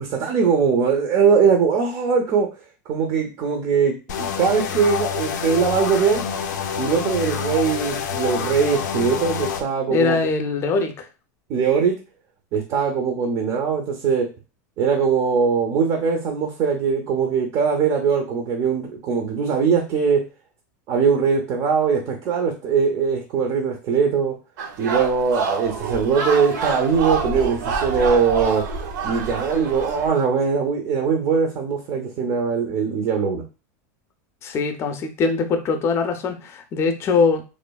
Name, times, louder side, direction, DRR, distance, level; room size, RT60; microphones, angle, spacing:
voice 1, 0.0-2.5 2.9-6.2 6.8-10.2 11.5-12.0 12.5-14.3 14.8-20.3 20.9-24.3 24.8-28.6 29.0-33.4, right 6 dB, 40° right, 2 dB, 0.5 m, -21 dB
sound 1, 4.1-9.6, left 8 dB, 85° left, 0.4 m, -27 dB
voice 2, 9.9-11.1 34.4-37.4, left 4 dB, 25° left, 6 dB, 0.4 m, -22 dB
sound 2, 24.6-30.1, right 4 dB, 85° right, 0.6 m, -27 dB
3.0 x 2.2 x 2.2 m, 0.31 s
supercardioid pair, 140°, 10 cm